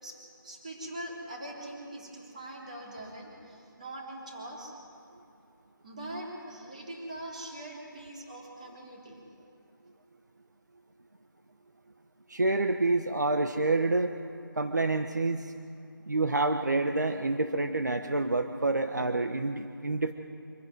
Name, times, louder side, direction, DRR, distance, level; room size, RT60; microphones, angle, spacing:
voice 1, 0.0-4.7 5.8-9.2, right 1 dB, 20° right, -2 dB, 3.8 m, -42 dB
voice 2, 12.3-14.1 14.6-15.5 16.1-20.1, right 2 dB, 55° right, 6 dB, 1.3 m, -28 dB
25.5 x 11.5 x 9.4 m, 2.8 s
figure-of-eight pair, 180°, 11 cm